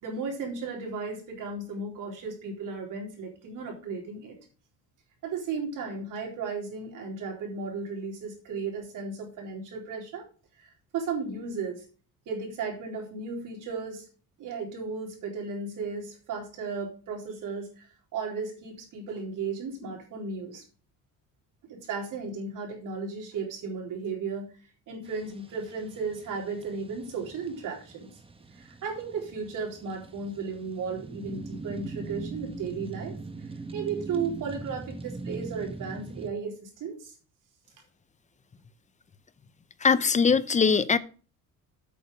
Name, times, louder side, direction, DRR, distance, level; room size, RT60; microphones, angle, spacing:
voice 1, 0.0-4.4 5.2-10.2 10.6-11.9 12.3-14.1 14.4-20.6 21.6-24.5 24.9-28.1 28.5-37.1, right 4 dB, 65° right, 1 dB, 3.9 m, -35 dB
sound 1, 25.1-36.3, right 3 dB, 15° right, 1.1 m, -41 dB
voice 2, 39.8-41.0, left 5 dB, 20° left, 16 dB, 0.6 m, -21 dB
8.5 x 6.6 x 5.4 m, 0.38 s
cardioid pair, 125°, 34 cm